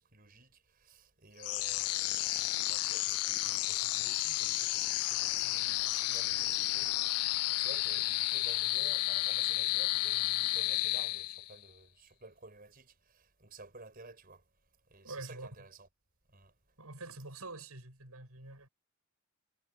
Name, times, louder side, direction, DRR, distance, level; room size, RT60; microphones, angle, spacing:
voice 1, 0.0-14.4 14.9-15.9 16.3-16.5, right 3 dB, 40° right, 5.3 m, -54 dB
sound 1, 1.4-11.6, left 18 dB, 85° left, 0.4 m, -32 dB
voice 2, 15.0-15.5 16.8-18.7, right 2 dB, 80° right, 8.0 m, -46 dB
head